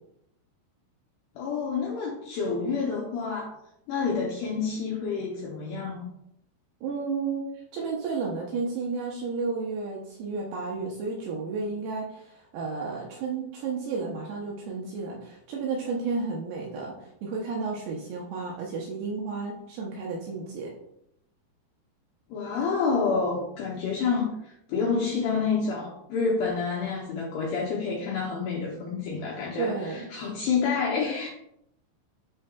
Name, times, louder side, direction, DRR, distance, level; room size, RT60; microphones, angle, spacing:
voice 1, 1.4-3.5 3.9-6.0 22.3-31.3, left 5 dB, 80° left, -2 dB, 2.3 m, -28 dB
voice 2, 6.8-7.4 7.7-20.7 29.6-30.3, right 4 dB, 80° right, -2 dB, 2.5 m, -32 dB
11.5 x 3.8 x 2.3 m, 0.77 s
omnidirectional pair, 5.6 m